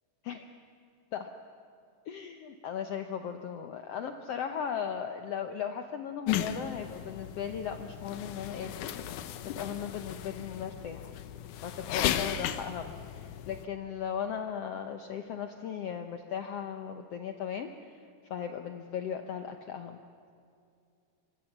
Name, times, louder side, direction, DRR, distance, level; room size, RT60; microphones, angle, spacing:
voice 1, 2.0-11.1 11.6-18.0 18.3-20.0, left 8 dB, 90° left, 7 dB, 1.3 m, -37 dB
sound 1, 6.3-13.7, left 11 dB, 70° left, 2.2 m, -35 dB
25.5 x 24.5 x 7.3 m, 2.5 s
omnidirectional pair, 4.1 m